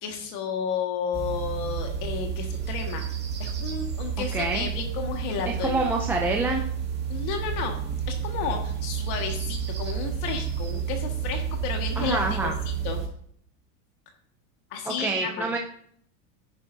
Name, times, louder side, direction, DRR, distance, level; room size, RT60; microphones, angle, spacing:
voice 1, 0.0-3.0 3.4-5.9 7.1-7.8 8.1-12.5 12.8-13.0 14.7-15.5, left 6 dB, 50° left, 3 dB, 1.7 m, -32 dB
sound 1, 1.1-13.1, right 7 dB, 25° right, 2.1 m, -31 dB
voice 2, 4.3-4.7 5.5-6.7 12.0-12.5 14.9-15.6, right 3 dB, 5° right, 1 dB, 0.4 m, -27 dB
14.0 x 10.0 x 2.7 m, 0.64 s
supercardioid pair, 150°, 41 cm